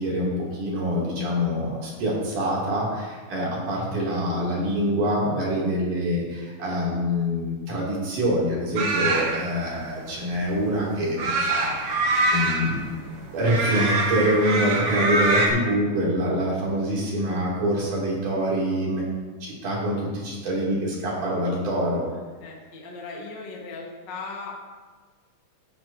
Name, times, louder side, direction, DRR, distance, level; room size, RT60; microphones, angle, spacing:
voice 1, 0.0-12.0 12.3-13.0 13.3-19.0 19.4-22.0, equal, 80° right, -5 dB, 4.5 m, -25 dB
sound 1, 8.8-15.5, right 2 dB, 55° right, 1.4 m, -24 dB
voice 2, 22.4-24.5, left 4 dB, 40° left, -2 dB, 1.9 m, -38 dB
15.5 x 9.2 x 2.8 m, 1.4 s
omnidirectional pair, 3.5 m